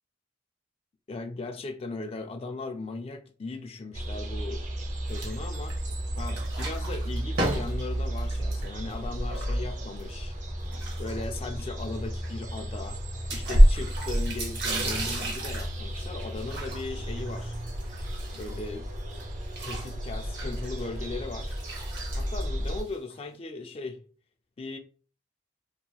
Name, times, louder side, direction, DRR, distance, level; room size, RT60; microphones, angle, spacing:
voice 1, 1.1-4.6 5.1-5.8 6.2-10.3 11.0-13.0 13.3-17.5 18.3-18.9 19.6-21.6 22.2-24.0 24.6-24.8, left 3 dB, 30° left, 0.3 m, -38 dB
sound 1, 3.9-22.8, equal, 40° right, 0.6 m, -30 dB
sound 2, 5.1-5.9 6.2-10.0 10.6-11.6 11.9-12.0 12.2-12.3 13.3-18.8 19.1-23.1, right 2 dB, 60° right, 0.9 m, -37 dB
2.9 x 2.8 x 2.3 m
head